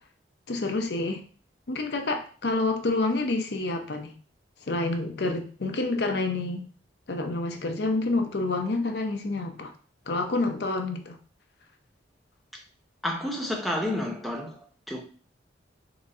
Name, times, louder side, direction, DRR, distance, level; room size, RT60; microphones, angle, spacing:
voice 1, 0.5-1.2 1.7-4.1 4.7-6.7 7.1-9.7 10.1-11.2, left 2 dB, 60° left, 0.6 m, -28 dB
voice 2, 13.0-14.5 14.9-15.0, left 1 dB, ahead, 0.7 m, -30 dB
3.9 x 2.7 x 4.1 m
head